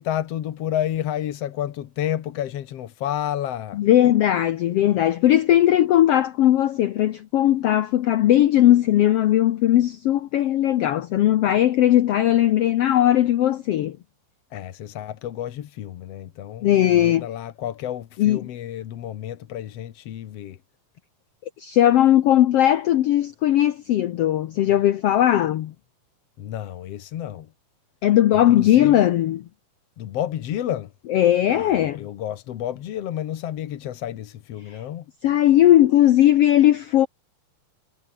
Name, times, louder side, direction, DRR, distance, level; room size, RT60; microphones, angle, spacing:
voice 1, 0.0-3.8 14.5-20.6 26.4-27.5 28.3-29.0 30.0-30.9 31.5-35.1, left 11 dB, 60° left, 1.9 m, -30 dB
voice 2, 3.8-14.0 16.6-17.3 18.2-18.4 21.6-25.7 28.0-29.4 31.1-32.0 34.7-34.8 35.2-37.1, left 12 dB, 90° left, 1.3 m, -18 dB
omnidirectional pair, 3.9 m